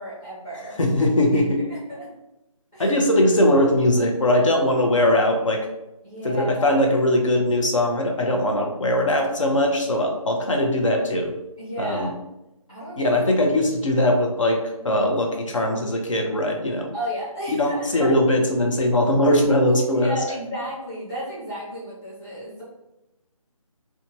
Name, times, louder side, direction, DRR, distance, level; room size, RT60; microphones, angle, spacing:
voice 1, 0.0-0.8 1.3-1.4 1.7-2.1 2.7-3.0 6.0-6.8 11.6-12.1 12.7-13.2 14.7-15.1 16.9-18.2 19.9-22.6, equal, 10° left, -13 dB, 0.7 m, -33 dB
voice 2, 0.8-1.6 2.8-5.6 6.2-11.3 11.8-12.1 13.0-16.9 17.5-20.2, left 1 dB, 60° left, 2 dB, 0.6 m, -20 dB
2.7 x 2.2 x 2.6 m, 0.93 s
figure-of-eight pair, 175°, 19 cm